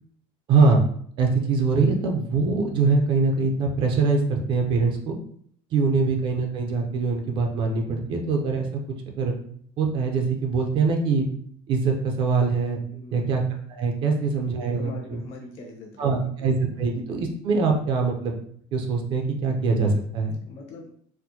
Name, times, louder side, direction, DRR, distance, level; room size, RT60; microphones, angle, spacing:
voice 1, 0.5-0.8 1.2-5.2 5.7-8.8 9.1-9.3 9.8-11.3 11.7-12.8 13.1-13.4 13.7-15.2 16.0-18.3 18.7-20.3, right 4 dB, 40° right, 2 dB, 0.5 m, -23 dB
voice 2, 12.9-13.3 14.2-16.5 20.2-20.9, left 2 dB, 50° left, -1 dB, 0.9 m, -43 dB
4.2 x 2.1 x 2.7 m, 0.63 s
cardioid pair, 165°, 13 cm